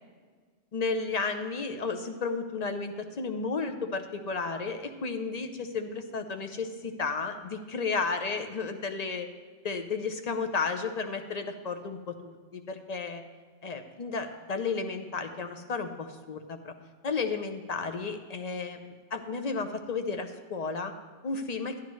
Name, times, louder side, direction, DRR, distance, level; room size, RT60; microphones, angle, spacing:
voice 1, 0.7-9.3 9.6-13.2 13.6-16.7 17.0-20.9 21.2-21.7, left 4 dB, 40° left, 6 dB, 0.6 m, -33 dB
12.0 x 11.0 x 3.1 m, 1.5 s
omnidirectional pair, 1.3 m